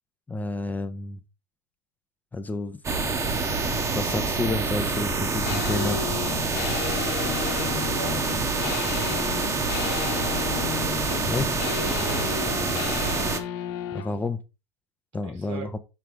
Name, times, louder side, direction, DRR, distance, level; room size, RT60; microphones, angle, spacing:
voice 1, 0.3-1.2 2.3-2.8 3.6-6.0 11.3-11.6 13.9-14.4 15.1-15.8, left 2 dB, 10° left, 0.6 m, -30 dB
sound 1, 2.8-13.4, right 4 dB, 20° right, 1.1 m, -26 dB
sound 2, 5.4-14.1, left 10 dB, 60° left, 1.1 m, -33 dB
voice 2, 6.8-10.2 12.0-12.3 15.2-15.7, right 5 dB, 75° right, 2.8 m, -42 dB
5.8 x 4.8 x 3.8 m
hypercardioid pair, 105°, 15 cm